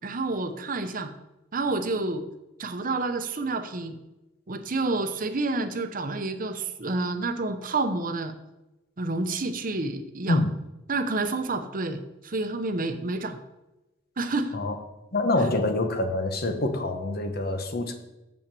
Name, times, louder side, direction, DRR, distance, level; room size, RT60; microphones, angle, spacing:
voice 1, 0.0-1.1 1.5-2.3 2.6-4.0 4.5-8.3 9.0-10.5 10.9-13.4 14.2-14.6 15.4-15.5, right 3 dB, 45° right, 8 dB, 0.8 m, -29 dB
voice 2, 15.1-17.9, left 2 dB, 55° left, 7 dB, 1.0 m, -26 dB
7.3 x 5.7 x 6.9 m, 0.99 s
head